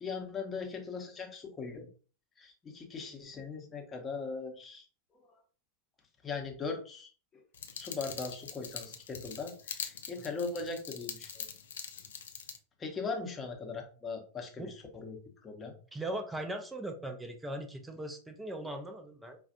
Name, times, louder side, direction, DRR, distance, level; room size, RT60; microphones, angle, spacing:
voice 1, 0.0-1.9 2.4-4.8 6.2-7.4 7.7-11.4 12.8-15.7, left 4 dB, 20° left, 3 dB, 0.9 m, -39 dB
sound 1, 7.5-12.6, left 7 dB, 65° left, 0.5 m, -43 dB
voice 2, 15.9-19.4, right 1 dB, 10° right, 5 dB, 0.6 m, -39 dB
4.9 x 2.4 x 2.6 m, 0.38 s
figure-of-eight pair, 90°, 0 cm